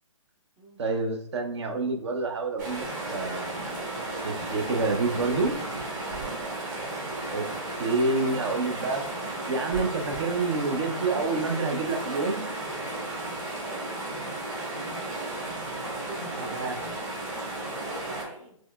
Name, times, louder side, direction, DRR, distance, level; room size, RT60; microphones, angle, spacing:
voice 1, 0.8-2.8 3.1-3.7 4.2-5.5 7.3-7.5 7.8-9.0 9.5-12.4 16.4-16.8, right 3 dB, 55° right, 4 dB, 0.6 m, -28 dB
sound 1, 2.6-18.2, right 2 dB, 35° right, 1.2 m, -34 dB
voice 2, 16.0-18.6, right 1 dB, 10° right, -4 dB, 0.4 m, -46 dB
4.3 x 3.0 x 2.3 m, 0.71 s
hypercardioid pair, 150°, 17 cm